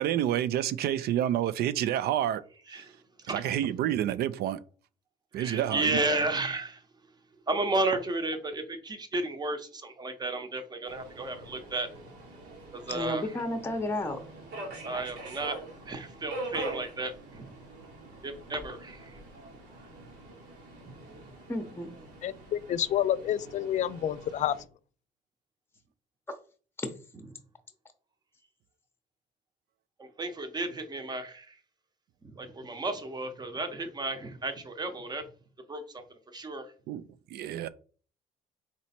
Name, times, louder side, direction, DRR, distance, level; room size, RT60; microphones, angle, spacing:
voice 1, 0.0-2.4 2.7-2.9 3.3-4.6 5.3-6.1 36.9-37.0 37.3-37.7, right 11 dB, 70° right, 0.4 m, -29 dB
voice 2, 2.7-3.4 5.3-6.8 7.5-11.9 12.7-13.4 14.8-15.6 15.9-17.5 18.2-19.2 20.0-20.1 20.8-21.2 27.1-27.2 30.0-31.6 32.2-35.3 35.7-36.0 36.3-36.7, right 2 dB, 25° right, 0.9 m, -33 dB
Subway metro underground, 10.9-24.6, right 2 dB, 85° right, 1.7 m, -44 dB
voice 3, 12.9-14.2 21.5-22.1 26.8-26.9, left 2 dB, 15° left, 0.8 m, -32 dB
voice 4, 22.2-24.6, left 11 dB, 45° left, 0.4 m, -29 dB
4.1 x 3.0 x 4.3 m
cardioid pair, 110°, 17 cm